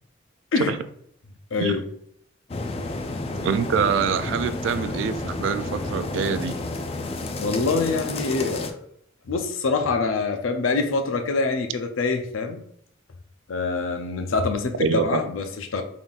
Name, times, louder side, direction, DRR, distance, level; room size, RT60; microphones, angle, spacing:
voice 1, 1.5-1.8 7.4-8.9 9.3-12.6 13.5-15.8, left 4 dB, 85° left, 6 dB, 0.5 m, -25 dB
sound 1, 2.5-8.7, left 2 dB, 30° left, 0.3 m, -31 dB
voice 2, 3.4-6.6 14.8-15.2, right 6 dB, 70° right, 11 dB, 0.3 m, -25 dB
3.8 x 3.7 x 2.4 m, 0.67 s
head